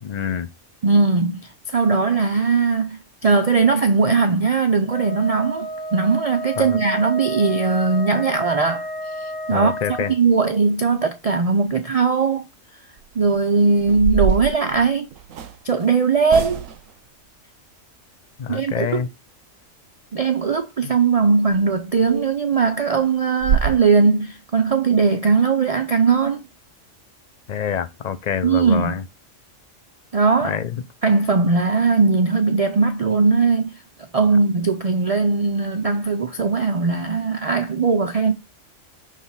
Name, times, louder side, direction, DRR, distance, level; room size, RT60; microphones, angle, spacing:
voice 1, 0.0-0.5 6.6-6.8 9.5-10.1 18.4-19.1 20.8-20.9 27.5-29.0 30.4-30.8, left 8 dB, 45° left, 0.6 m, -26 dB
voice 2, 0.8-1.4 1.7-8.8 9.5-9.7 10.1-12.4 13.2-15.1 15.6-16.7 18.5-19.0 20.1-26.4 28.4-28.9 30.1-30.6 31.0-33.7 34.1-38.3, right 4 dB, 60° right, 0.3 m, -19 dB
Wind instrument woodwind instrument, 4.9-10.2, equal, 70° left, 1.2 m, -31 dB
sound 1, 13.0-13.3 13.8-15.6 16.3-16.9 21.5-21.6 22.0-22.1 22.5-22.6 23.0-23.1 23.4-23.7, right 7 dB, 90° right, 1.1 m, -24 dB
6.3 x 3.5 x 5.6 m
omnidirectional pair, 1.3 m